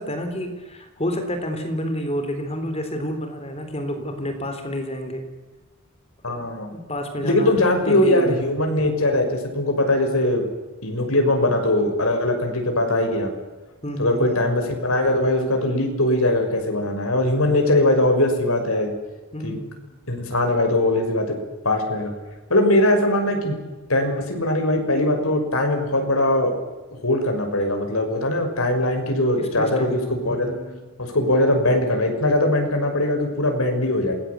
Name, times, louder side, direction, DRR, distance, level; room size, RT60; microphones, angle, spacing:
voice 1, 0.0-5.2 6.3-6.5 6.7-7.5 7.8-8.4 13.8-14.5 19.3-19.7 29.4-30.8, equal, 30° left, 6 dB, 3.8 m, -29 dB
voice 2, 6.2-6.7 7.2-10.4 10.8-13.3 14.0-18.9 19.4-19.6 20.1-21.3 21.6-22.1 22.5-23.6 23.9-26.5 27.0-30.5 31.0-34.1, left 1 dB, 80° left, 4 dB, 6.1 m, -21 dB
27.5 x 20.0 x 8.4 m, 1.2 s
head